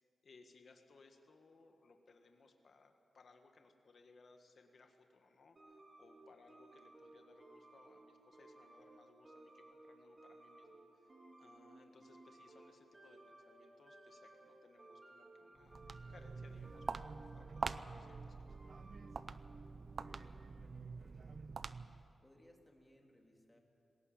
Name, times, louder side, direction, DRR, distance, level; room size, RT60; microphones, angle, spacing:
voice 1, 0.2-11.1 11.4-15.8 16.1-18.6, left 3 dB, 65° left, 4 dB, 1.7 m, -65 dB
sound 1, 5.6-20.3, right 2 dB, 40° right, 3.3 m, -60 dB
Walk footsteps, 15.6-22.1, right 4 dB, 60° right, 0.6 m, -46 dB
voice 2, 19.9-21.5 22.2-23.6, left 1 dB, 15° left, 1 dB, 3.1 m, -66 dB
20.5 x 17.5 x 8.7 m, 2.6 s
cardioid pair, 75°, 0 cm